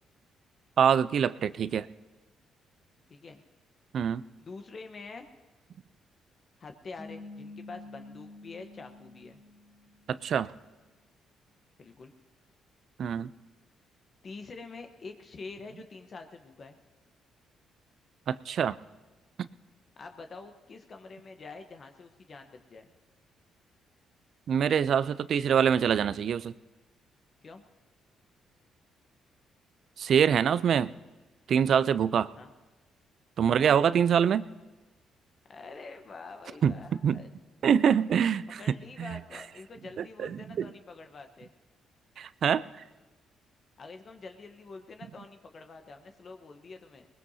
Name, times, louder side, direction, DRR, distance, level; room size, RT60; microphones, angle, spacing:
voice 1, 0.8-1.9 3.9-4.2 10.1-10.5 13.0-13.3 18.3-18.8 19.4-19.5 24.5-26.5 30.0-30.9 31.5-32.3 33.4-34.5 36.6-36.7 37.0-37.2 37.6-38.6 39.0-39.2 40.2-40.3 40.6-40.7 42.2-42.6, right 8 dB, 60° right, 16 dB, 0.4 m, -24 dB
voice 2, 3.1-3.4 4.4-5.3 6.6-9.4 11.8-12.1 14.2-16.8 20.0-22.9 27.4-27.6 32.4-32.5 33.5-33.8 35.5-37.3 38.6-41.5 43.8-47.1, left 4 dB, 45° left, 5 dB, 1.0 m, -46 dB
sound 1, 7.0-10.3, left 3 dB, 10° left, 2.6 m, -48 dB
21.0 x 20.0 x 2.8 m, 1.2 s
cardioid pair, 90°, 0 cm